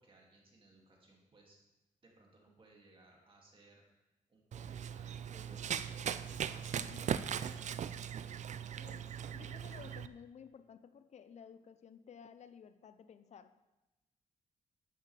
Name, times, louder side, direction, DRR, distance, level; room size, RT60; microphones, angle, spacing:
voice 1, 0.0-1.6 2.0-8.0, right 2 dB, 40° right, -1 dB, 2.4 m, -63 dB
Run, 4.5-10.1, right 8 dB, 55° right, 0.4 m, -39 dB
voice 2, 6.7-7.1 8.8-13.5, left 7 dB, 50° left, 11 dB, 0.6 m, -55 dB
11.5 x 9.0 x 3.4 m, 1.0 s
cardioid pair, 105°, 14 cm